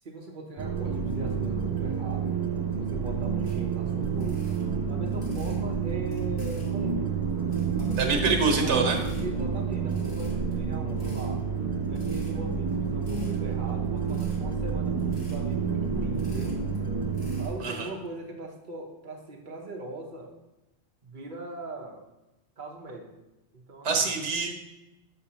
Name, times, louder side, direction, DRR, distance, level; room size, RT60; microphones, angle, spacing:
voice 1, 0.0-2.4 2.8-4.6 4.9-7.2 7.8-11.4 11.9-16.5 17.4-20.3 21.0-22.0 22.6-23.1 23.5-24.2, right 3 dB, 50° right, 1 dB, 1.0 m, -40 dB
sound 1, 0.6-17.5, right 5 dB, 30° right, 0.4 m, -29 dB
sound 2, 3.4-3.6 4.0-5.6 6.1-6.8 7.3-8.3 8.7-9.2 9.6-9.7 9.9-10.5 10.9-11.3 11.8-12.5 13.0-13.4 14.0-14.4 15.0-15.4 15.9-16.8 17.1-17.5, left 1 dB, 20° left, 1.7 m, -53 dB
voice 2, 8.0-9.0 17.6-17.9 23.8-24.5, right 4 dB, 80° right, 2 dB, 1.2 m, -25 dB
6.6 x 5.1 x 2.9 m, 0.97 s
omnidirectional pair, 1.2 m